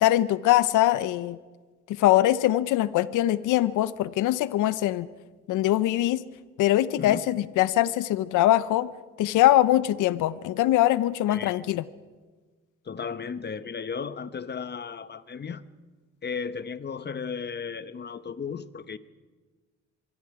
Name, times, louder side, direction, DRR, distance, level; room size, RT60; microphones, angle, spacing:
voice 1, 0.0-1.4 1.9-5.1 5.5-6.2 6.6-8.9 9.2-11.8, left 14 dB, 90° left, 0.7 m, -22 dB
voice 2, 11.3-11.7 12.8-15.6 16.2-19.0, left 6 dB, 35° left, 1.0 m, -35 dB
25.0 x 23.0 x 4.8 m
cardioid pair, 90°, 30 cm